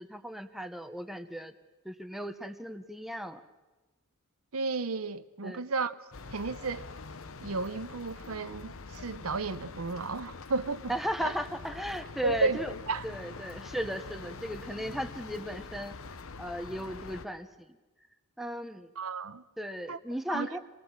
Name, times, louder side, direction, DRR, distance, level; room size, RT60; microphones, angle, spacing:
voice 1, 0.0-1.5 1.8-3.4 5.4-5.6 10.9-12.7 13.0-15.9 16.4-17.7 18.4-18.9 19.6-20.6, equal, ahead, 1.0 m, -36 dB
voice 2, 4.5-5.9 6.3-6.8 7.4-10.9 11.2-11.3 12.2-12.6 12.9-13.1 19.0-19.4 19.9-20.0 20.3-20.6, right 3 dB, 70° right, 0.8 m, -32 dB
sound 1, 6.1-17.3, left 4 dB, 65° left, 1.0 m, -45 dB
26.5 x 20.0 x 7.5 m
head